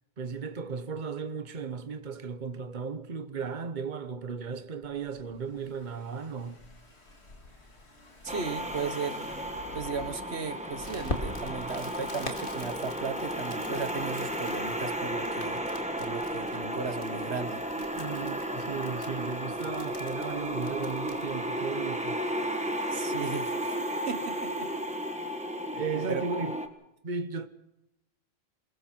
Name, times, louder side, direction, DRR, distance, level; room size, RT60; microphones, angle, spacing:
voice 1, 0.2-6.6 17.9-22.2 25.7-26.6 27.0-27.5, right 5 dB, 45° right, 1.2 m, -35 dB
Car / Engine, 4.8-11.8, left 2 dB, 75° left, 2.9 m, -50 dB
voice 2, 8.2-9.3 9.7-15.6 16.0-17.6 22.9-23.8 24.1-24.7 26.1-26.3, right 5 dB, 75° right, 1.5 m, -36 dB
sound 1, 8.3-26.7, right 1 dB, 5° right, 1.6 m, -34 dB
Crackle, 10.8-21.3, left 2 dB, 55° left, 2.6 m, -44 dB
28.0 x 22.0 x 4.6 m
omnidirectional pair, 1.1 m